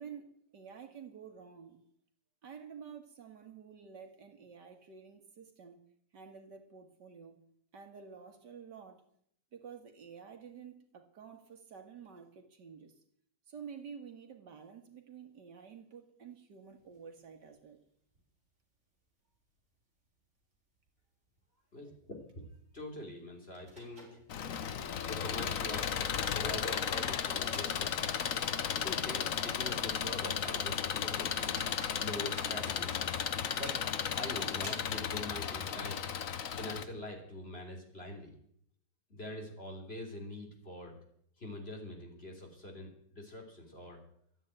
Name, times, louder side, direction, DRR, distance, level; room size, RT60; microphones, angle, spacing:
voice 1, 0.0-1.8 2.4-5.8 6.1-7.4 7.7-9.0 9.5-12.9 13.5-17.8, right 6 dB, 85° right, 5 dB, 2.4 m, -50 dB
sound 1, 16.8-17.8 18.1-18.2 18.6-18.7 19.3-19.8 20.0-20.2 20.8-21.0 21.3-21.5 22.8-22.9 23.5-24.7 25.4-28.6 28.9-29.0 29.6-29.7 30.1-30.3 30.8-30.9 31.3-35.2, right 1 dB, 40° right, 4.7 m, -53 dB
voice 2, 21.7-22.4 22.7-24.1 25.0-28.4 28.7-31.6 32.0-33.0 33.6-33.8 34.1-36.0 36.6-38.3 39.1-41.0 41.4-44.0, left 1 dB, 35° left, 0 dB, 3.4 m, -44 dB
Engine, 24.3-36.8, left 8 dB, 55° left, 1.2 m, -34 dB
13.0 x 9.1 x 9.0 m, 0.67 s
omnidirectional pair, 1.8 m